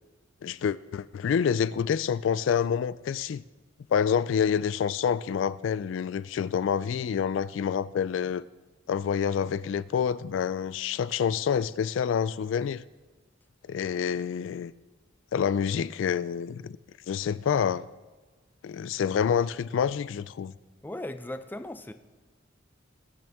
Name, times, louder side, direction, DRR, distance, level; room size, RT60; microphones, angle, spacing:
voice 1, 0.4-3.4 3.9-8.4 8.9-12.8 13.7-14.7 15.3-16.8 17.1-17.8 18.6-20.5, left 7 dB, 70° left, 0.3 m, -27 dB
voice 2, 20.8-21.9, left 1 dB, 10° left, 0.5 m, -37 dB
19.5 x 9.0 x 3.5 m
head